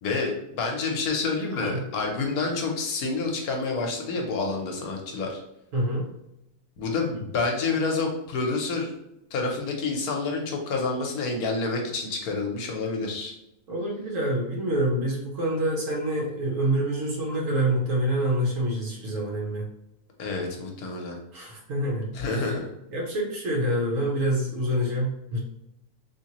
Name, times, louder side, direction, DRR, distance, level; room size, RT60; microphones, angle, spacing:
voice 1, 0.0-5.4 6.8-8.9 9.3-13.4 20.2-21.2 22.1-22.7, left 3 dB, 70° left, 2 dB, 1.2 m, -28 dB
voice 2, 5.7-6.1 13.7-19.7 21.3-22.4 22.9-25.4, right 1 dB, 60° right, -3 dB, 1.3 m, -26 dB
3.6 x 3.0 x 2.9 m, 0.85 s
omnidirectional pair, 1.7 m